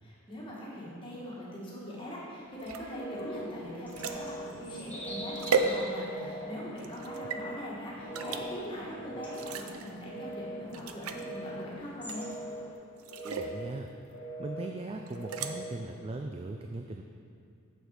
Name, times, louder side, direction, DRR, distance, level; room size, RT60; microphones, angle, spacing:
voice 1, 0.0-12.3, equal, 25° left, -6 dB, 1.8 m, -41 dB
sound 1, 2.6-6.3 6.8-7.4 8.1-8.4 9.3-9.9 10.3-10.4 10.7-11.3 12.0-12.5 13.0-13.5 15.1-15.5, right 5 dB, 80° right, 0.5 m, -34 dB
Telephone, 2.9-3.5 3.9-4.5 5.0-5.5 6.0-6.5 7.0-7.6 8.0-8.6 9.0-9.6 10.0-10.6 11.1-11.6 12.1-12.7 13.1-13.7 14.1-14.7 15.1-15.7, right 1 dB, 65° left, 1.2 m, -41 dB
sound 2, 3.2-12.7, left 1 dB, 5° left, 1.1 m, -47 dB
voice 2, 13.2-13.9 14.4-17.0, right 2 dB, 25° right, 3 dB, 0.3 m, -39 dB
7.7 x 6.4 x 5.0 m, 2.4 s
head